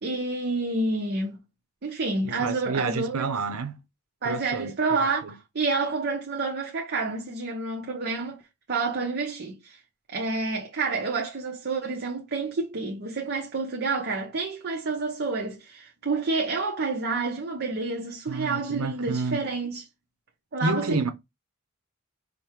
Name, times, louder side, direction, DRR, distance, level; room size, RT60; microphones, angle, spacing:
voice 1, 0.0-1.4 1.8-3.3 4.2-8.4 8.7-9.8 10.1-19.8 20.5-21.1, right 3 dB, 50° right, 0.8 m, -29 dB
voice 2, 2.2-3.8 4.2-4.7 5.2-5.3 18.3-19.5 20.6-21.1, right 3 dB, 85° right, 0.7 m, -29 dB
5.2 x 2.2 x 4.5 m
head